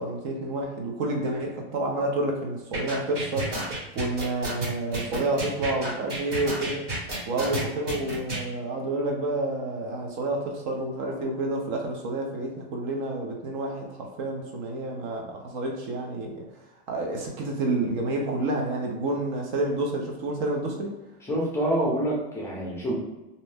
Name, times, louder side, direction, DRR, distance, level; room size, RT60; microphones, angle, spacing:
voice 1, 0.0-3.6 3.9-6.9 7.3-16.4 16.9-20.9, right 2 dB, 45° right, 1 dB, 0.6 m, -29 dB
sound 1, 2.7-8.4, right 2 dB, 30° right, 1.0 m, -31 dB
voice 2, 21.2-23.0, right 1 dB, 10° left, -5 dB, 0.6 m, -26 dB
2.6 x 2.0 x 3.3 m, 1.0 s
supercardioid pair, 140°, 32 cm